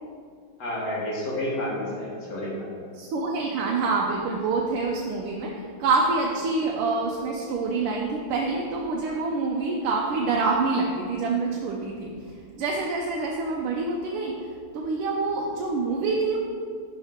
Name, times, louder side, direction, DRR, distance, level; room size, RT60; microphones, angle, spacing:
voice 1, 0.6-2.7, left 1 dB, 45° left, -5 dB, 1.8 m, -30 dB
voice 2, 3.0-14.5 14.7-16.4, right 3 dB, 85° right, -1 dB, 1.5 m, -26 dB
10.5 x 3.6 x 3.6 m, 2.2 s
omnidirectional pair, 2.4 m